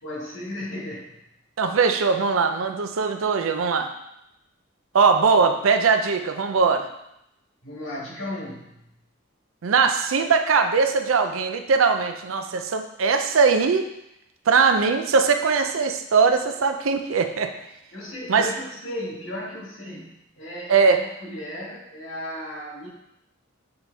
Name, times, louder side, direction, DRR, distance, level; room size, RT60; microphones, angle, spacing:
voice 1, 0.0-1.2 7.6-8.9 17.9-22.9, left 1 dB, 70° left, -4 dB, 2.0 m, -35 dB
voice 2, 1.6-3.9 4.9-6.9 9.6-13.9 14.5-17.5 18.3-18.5 20.7-21.0, right 5 dB, 80° right, 6 dB, 0.5 m, -20 dB
6.6 x 4.2 x 3.4 m, 0.83 s
head